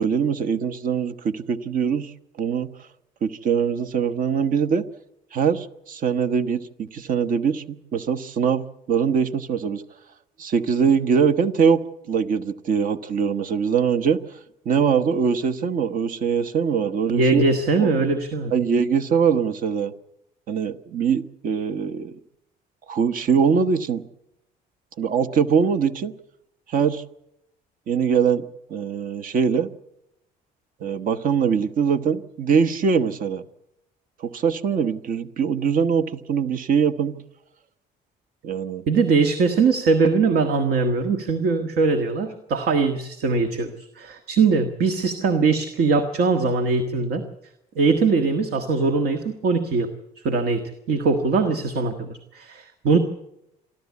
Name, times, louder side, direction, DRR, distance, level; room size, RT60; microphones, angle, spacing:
voice 1, 0.0-2.1 2.4-2.7 3.2-4.8 5.3-9.8 10.4-14.2 14.6-17.4 17.8-17.9 18.5-19.9 20.5-22.2 22.9-24.0 25.0-26.1 26.7-27.0 27.9-28.4 28.7-29.7 30.8-33.4 34.2-37.2 38.4-38.8, right 6 dB, 55° right, 8 dB, 1.2 m, -22 dB
voice 2, 17.1-18.5 38.9-47.3 47.8-49.9 50.2-53.0, right 4 dB, 70° right, 8 dB, 1.6 m, -21 dB
27.5 x 12.0 x 8.4 m, 0.84 s
cardioid pair, 110°, 17 cm